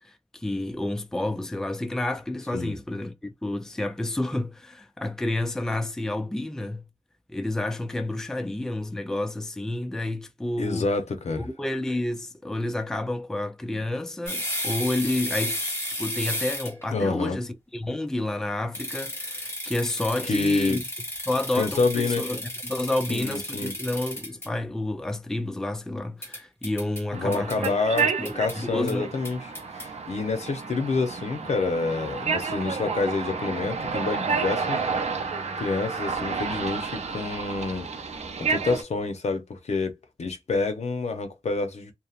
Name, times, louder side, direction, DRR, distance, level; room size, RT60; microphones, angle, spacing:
voice 1, 0.0-6.8 7.3-10.9 11.4-15.6 16.0-20.8 21.3-27.8 28.0-29.1, left 1 dB, 5° left, 0.3 m, -30 dB
voice 2, 10.6-11.5 16.9-17.4 20.2-20.8 21.5-22.4 23.1-23.7 27.1-34.8 35.6-37.9 38.5-39.9 40.2-41.9, left 3 dB, 80° left, 0.6 m, -28 dB
sound 1, 14.3-16.9 18.7-24.5 26.2-27.0 27.3-27.7 28.0-28.5 28.9-29.0 29.2-29.9, left 1 dB, 20° left, 0.9 m, -33 dB
sound 2, 27.1-38.8, right 5 dB, 80° right, 0.5 m, -30 dB
2.7 x 2.1 x 2.4 m
wide cardioid pair, 90°, 11 cm